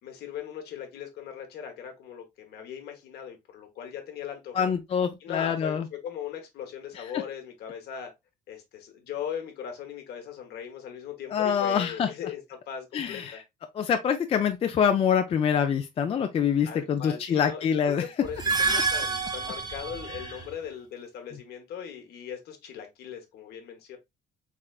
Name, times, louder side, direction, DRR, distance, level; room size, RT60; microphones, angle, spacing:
voice 1, 0.0-4.7 5.2-8.1 8.5-13.4 16.6-24.0, left 8 dB, 70° left, 1.1 m, -39 dB
voice 2, 4.5-5.9 7.1-7.2 11.3-12.1 12.9-13.4 13.7-18.0, left 7 dB, 35° left, 0.4 m, -25 dB
sound 1, 18.2-20.5, right 4 dB, 25° right, 0.7 m, -28 dB
3.6 x 3.3 x 2.3 m
cardioid pair, 110°, 17 cm